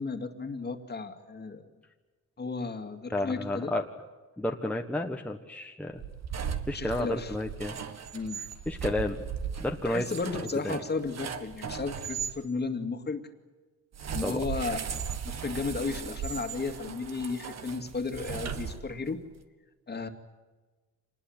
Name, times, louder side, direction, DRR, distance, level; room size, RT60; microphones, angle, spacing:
voice 1, 0.0-1.7 2.4-3.7 6.7-7.3 8.1-8.4 9.8-13.3 14.1-14.8 15.2-19.2 19.9-20.1, left 4 dB, 30° left, 7 dB, 2.3 m, -34 dB
voice 2, 3.1-3.8 4.4-6.0 6.7-7.8 8.7-9.2 9.6-10.1 10.3-10.8 14.2-14.4, left 1 dB, 5° left, 2 dB, 1.4 m, -31 dB
sound 1, 5.9-12.4 13.9-19.2, right 7 dB, 55° right, 1.8 m, -37 dB
26.5 x 20.5 x 9.0 m, 1.3 s
cardioid pair, 125°, 31 cm